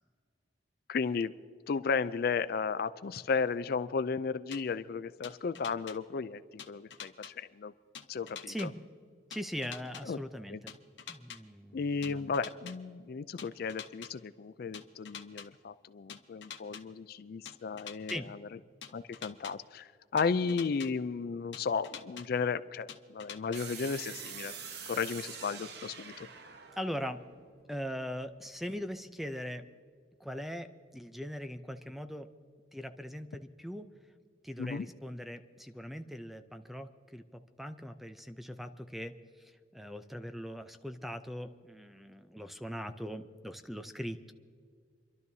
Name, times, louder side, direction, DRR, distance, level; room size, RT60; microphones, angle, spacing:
voice 1, 0.9-1.3 1.7-7.7 8.1-8.7 10.0-10.2 10.5-10.6 11.7-18.4 18.9-24.5 24.9-26.3 34.6-34.9, left 5 dB, 55° left, 14 dB, 0.4 m, -34 dB
sound 1, 4.5-4.6 5.2-6.0 6.6-7.3 7.9-8.7 9.3-10.0 10.7-11.4 12.0-12.7 13.4-14.1 14.7-15.5 16.1-16.8 17.5-18.2 18.8-19.5 20.2-20.9 21.5-22.2 22.9-23.6, left 8 dB, 70° left, 0.9 m, -45 dB
voice 2, 9.3-10.7 11.1-12.3 18.1-18.3 26.8-27.2 27.7-29.7 30.2-32.3 32.7-33.9 34.4-39.1 39.4-44.3, equal, ahead, 9 dB, 0.5 m, -41 dB
sound 2, 23.5-28.4, right 6 dB, 60° right, 0.9 m, -46 dB
29.0 x 12.0 x 2.7 m, 2.1 s
head